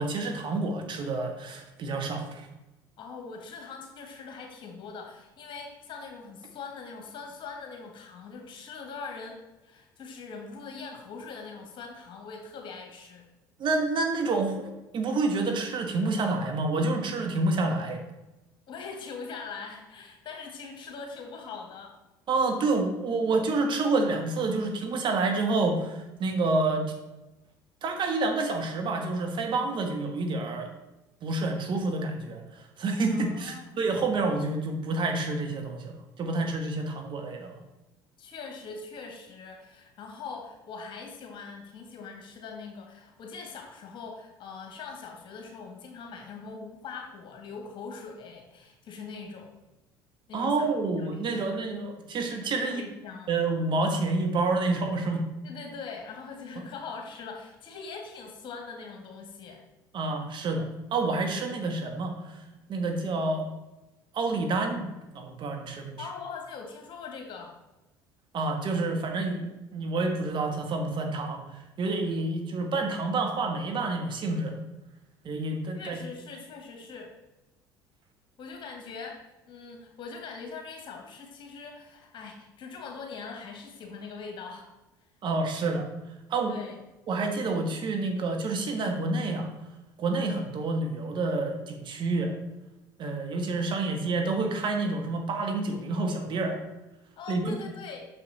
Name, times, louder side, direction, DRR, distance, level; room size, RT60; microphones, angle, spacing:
voice 1, 0.0-2.5 13.6-14.7 14.9-18.0 22.3-26.8 27.8-30.7 31.2-37.5 50.3-52.8 53.3-55.3 59.9-62.4 62.7-63.5 64.1-64.8 65.1-66.0 68.3-71.4 71.8-74.6 75.2-76.0 85.2-85.9 86.3-86.5 87.1-89.5 90.0-92.3 93.0-96.6 97.3-97.6, right 3 dB, 45° right, 4 dB, 1.3 m, -28 dB
voice 2, 3.0-13.3 18.7-22.0 33.1-33.8 38.2-49.6 50.3-51.7 52.6-53.3 55.4-59.6 66.0-67.6 75.7-77.1 78.4-84.7 86.5-86.8 97.2-98.1, left 5 dB, 50° left, 2 dB, 1.8 m, -42 dB
6.4 x 5.6 x 4.0 m, 1.0 s
hypercardioid pair, 70°, 11 cm